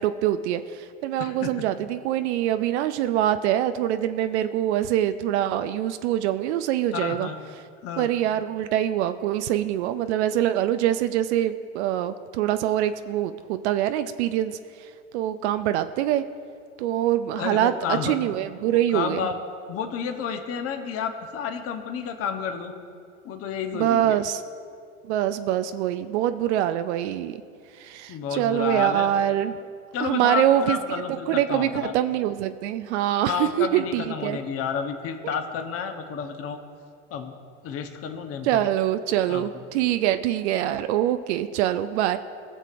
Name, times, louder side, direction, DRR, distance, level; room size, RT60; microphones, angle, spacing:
voice 1, 0.0-7.3 8.0-14.6 15.1-16.2 16.8-19.3 23.7-24.4 25.0-27.4 27.7-29.5 30.0-30.8 31.3-34.4 35.2-35.3 38.4-42.2, right 12 dB, 65° right, 10 dB, 0.5 m, -24 dB
voice 2, 1.2-1.5 6.9-7.4 7.8-8.1 17.4-18.2 18.7-19.3 19.7-22.7 23.2-24.1 28.1-29.1 29.9-31.9 33.3-36.6 37.1-37.3 37.6-38.6 39.3-39.4, left 7 dB, 40° left, 5 dB, 1.0 m, -30 dB
18.0 x 6.6 x 2.5 m, 2.3 s
hypercardioid pair, 90°, 36 cm